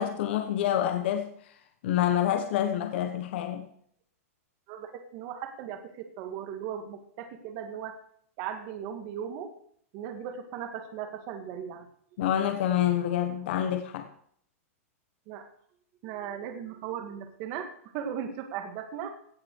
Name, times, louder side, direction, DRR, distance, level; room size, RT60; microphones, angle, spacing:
voice 1, 0.0-1.3 1.8-3.7 12.2-14.1, left 10 dB, 45° left, 1.2 m, -27 dB
voice 2, 4.7-8.0 8.4-9.5 9.9-11.9 15.3-15.5 16.0-19.2, right 8 dB, 30° right, 1.8 m, -37 dB
16.5 x 7.6 x 4.6 m
supercardioid pair, 170°, 8 cm